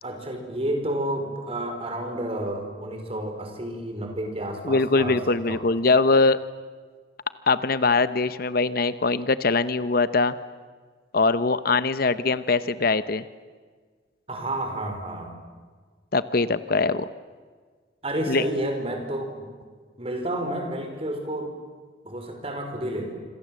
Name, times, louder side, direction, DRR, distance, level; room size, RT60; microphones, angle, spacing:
voice 1, 0.0-5.6 14.3-15.3 18.0-19.4 20.0-21.5 22.0-23.2, right 1 dB, 30° right, 4 dB, 4.9 m, -30 dB
voice 2, 4.6-6.4 7.5-10.3 11.1-13.2 16.1-17.1 18.3-18.4, left 3 dB, 50° left, 14 dB, 0.8 m, -22 dB
26.5 x 26.0 x 7.7 m, 1.5 s
head